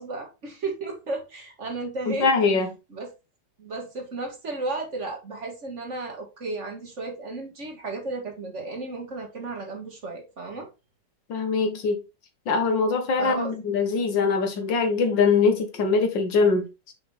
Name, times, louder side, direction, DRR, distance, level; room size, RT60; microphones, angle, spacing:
voice 1, 0.0-2.3 2.9-3.1 3.6-10.7 13.2-13.5, right 3 dB, 40° right, 1.7 m, -34 dB
voice 2, 2.1-2.7 11.3-12.0 12.5-16.9, left 4 dB, 85° left, 1.9 m, -22 dB
5.8 x 5.1 x 3.2 m
omnidirectional pair, 1.9 m